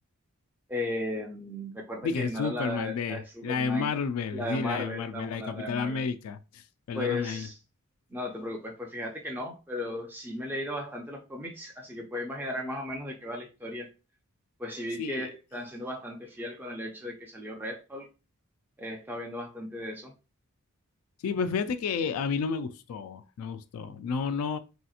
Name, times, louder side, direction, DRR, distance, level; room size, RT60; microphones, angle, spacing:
voice 1, 0.7-3.9 4.3-6.0 6.9-7.6 8.1-13.9 14.6-18.1 18.8-20.1, left 1 dB, 10° right, 0.4 m, -36 dB
voice 2, 2.0-7.5 15.0-15.3 21.2-24.6, left 5 dB, 80° left, 0.3 m, -31 dB
3.3 x 2.8 x 2.3 m
head